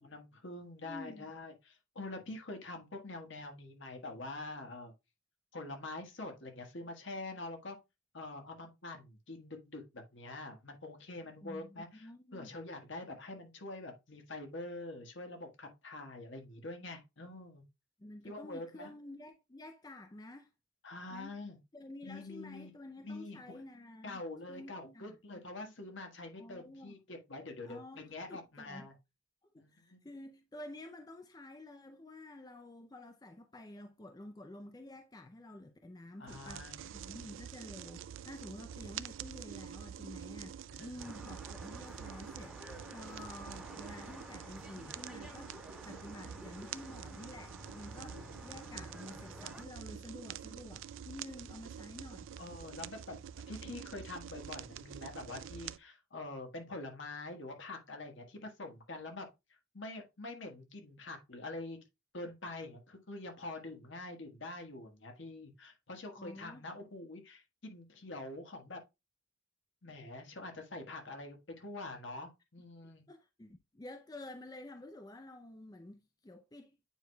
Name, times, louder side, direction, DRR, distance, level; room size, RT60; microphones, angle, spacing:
voice 1, 0.0-4.9 5.5-7.8 8.1-17.6 18.2-18.9 20.8-21.6 22.0-22.7 23.0-23.6 24.0-28.9 29.5-30.1 36.2-37.3 40.7-41.1 48.1-48.2 52.4-53.2 53.5-59.3 59.7-61.8 62.1-68.8 69.8-73.0, left 2 dB, 70° left, 1.5 m, -45 dB
voice 2, 0.8-1.3 11.4-12.5 18.0-20.5 21.1-21.4 21.7-24.2 24.5-25.4 26.4-27.0 27.7-28.9 29.5-45.6 45.8-52.3 66.2-66.6 73.1-76.8, left 1 dB, 20° left, 0.5 m, -50 dB
sound 1, 36.3-55.8, right 9 dB, 75° right, 0.3 m, -47 dB
sound 2, 41.0-49.6, right 1 dB, 5° right, 1.3 m, -51 dB
8.8 x 4.7 x 2.3 m
head